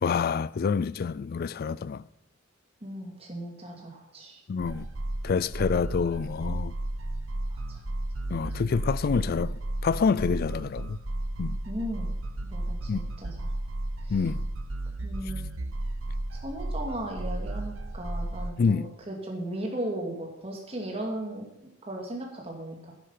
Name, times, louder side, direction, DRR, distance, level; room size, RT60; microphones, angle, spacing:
voice 1, 0.0-2.0 4.5-4.9 5.2-6.7 8.3-11.0 11.4-11.6 12.9-13.0 14.1-14.5 18.6-18.9, left 5 dB, 45° left, 0.3 m, -27 dB
voice 2, 2.8-4.4 7.5-7.8 11.7-12.1 12.5-13.5 14.0-14.2 15.0-15.4 16.3-21.5 21.8-22.8, right 1 dB, 30° right, 2.4 m, -36 dB
sound 1, 4.6-18.5, right 1 dB, 80° right, 1.0 m, -33 dB
10.5 x 9.8 x 5.8 m
head